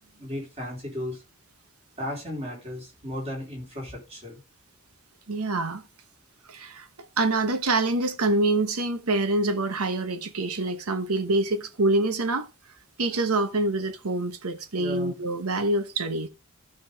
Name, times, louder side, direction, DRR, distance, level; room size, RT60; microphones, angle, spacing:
voice 1, 0.0-1.2 2.0-4.4 14.8-15.1, left 1 dB, 30° right, 4.1 m, -35 dB
voice 2, 5.3-5.8 6.5-6.9 7.2-12.5 13.0-16.3, right 2 dB, 80° right, 1.1 m, -26 dB
15.5 x 5.3 x 3.5 m
head